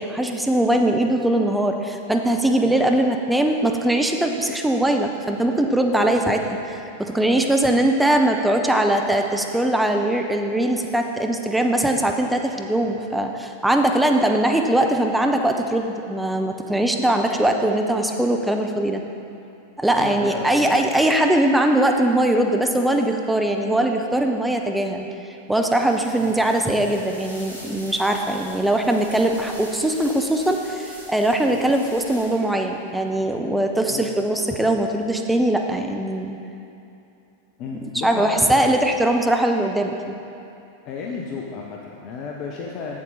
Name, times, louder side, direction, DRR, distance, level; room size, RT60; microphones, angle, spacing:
voice 1, 0.0-19.0 19.8-25.1 25.5-36.4 38.0-40.2, right 1 dB, 5° right, 3 dB, 0.6 m, -21 dB
voice 2, 20.0-21.1 26.2-26.3 31.5-31.6 33.9-34.1 37.6-38.9 40.8-43.0, left 4 dB, 40° left, -1 dB, 0.6 m, -33 dB
sound 1, 25.7-32.6, equal, 80° left, 1.8 m, -43 dB
7.5 x 7.3 x 4.0 m, 2.7 s
figure-of-eight pair, 90°, 0 cm